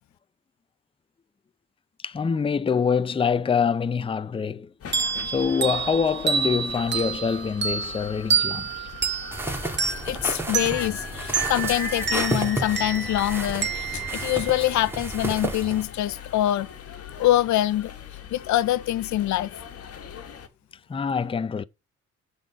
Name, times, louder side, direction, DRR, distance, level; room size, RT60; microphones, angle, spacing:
voice 1, 2.0-4.7 5.2-8.7 20.9-21.6, left 6 dB, 20° left, 0.5 m, -25 dB
sound 1, 4.8-20.5, left 8 dB, 50° left, 1.7 m, -41 dB
sound 2, 4.9-15.2, right 6 dB, 35° right, 1.9 m, -29 dB
sound 3, 9.3-15.8, right 2 dB, 10° right, 2.5 m, -32 dB
voice 2, 10.0-16.7 17.2-17.9 18.3-19.5, left 14 dB, 70° left, 0.6 m, -24 dB
8.8 x 4.2 x 5.7 m
cardioid pair, 90°, 30 cm